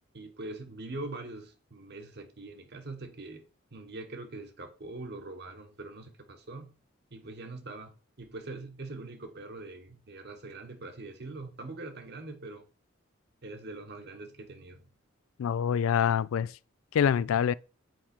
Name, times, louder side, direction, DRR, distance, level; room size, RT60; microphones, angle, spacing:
voice 1, 0.1-3.4 3.7-6.7 7.1-12.6 13.4-14.9, right 2 dB, 55° right, 1.3 m, -43 dB
voice 2, 15.4-16.5 16.9-17.5, left 8 dB, 90° left, 0.3 m, -25 dB
7.7 x 4.9 x 4.4 m
head